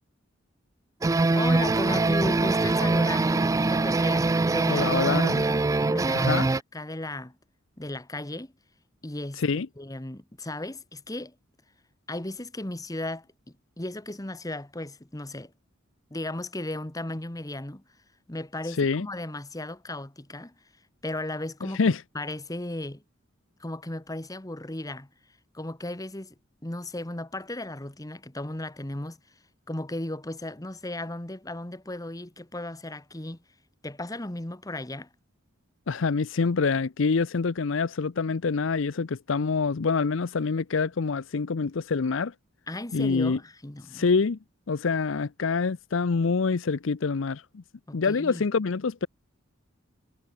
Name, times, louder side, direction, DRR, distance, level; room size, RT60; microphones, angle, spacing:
sound 1, 1.0-6.6, right 3 dB, 15° right, 0.3 m, -23 dB
voice 1, 1.3-6.4 6.7-7.4 7.8-8.5 9.0-9.4 9.8-11.3 12.1-15.5 16.1-17.8 18.3-20.5 21.0-23.0 23.6-25.1 25.5-26.3 26.6-29.2 29.7-33.4 33.8-35.1 42.7-44.2 47.9-48.4, left 1 dB, 15° left, 1.3 m, -35 dB
voice 2, 4.7-5.4 6.1-6.5 9.4-9.7 18.8-19.1 21.7-22.0 35.9-42.3 42.9-43.4 43.9-44.4 44.7-47.6 47.9-49.1, left 4 dB, 65° left, 0.6 m, -26 dB
head